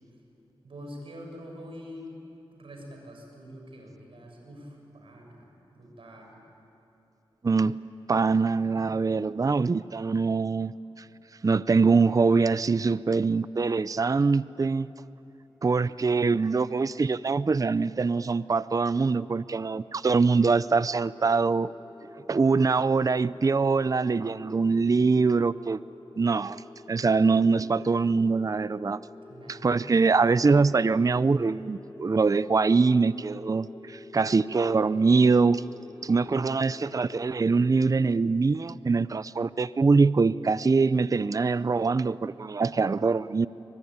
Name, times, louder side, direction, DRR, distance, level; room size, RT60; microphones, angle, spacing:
voice 1, 0.6-2.2 2.5-6.4 29.3-29.9, equal, 70° right, 1 dB, 6.8 m, -45 dB
voice 2, 7.4-7.8 8.1-11.0 11.4-14.9 15.6-21.7 22.3-25.8 26.2-26.6 26.9-29.0 29.5-35.6 36.0-43.5, right 4 dB, 35° right, 17 dB, 0.5 m, -23 dB
sound 1, 20.0-37.7, left 2 dB, 55° left, 7.2 m, -48 dB
24.0 x 22.0 x 9.6 m, 2.9 s
cardioid pair, 60°, 10 cm